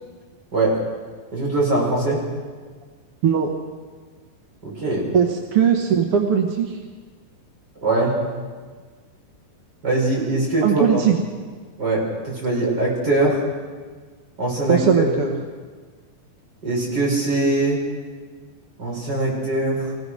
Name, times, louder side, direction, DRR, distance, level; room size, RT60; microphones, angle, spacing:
voice 1, 1.3-2.2 4.6-5.1 7.8-8.1 9.8-11.0 11.8-13.4 14.4-15.1 16.6-17.8 18.8-19.9, right 2 dB, 25° right, -3 dB, 6.3 m, -21 dB
voice 2, 5.1-6.8 10.6-11.2 14.7-15.3, right 8 dB, 60° right, 2 dB, 1.6 m, -19 dB
25.5 x 16.0 x 6.5 m, 1.5 s
omnidirectional pair, 4.1 m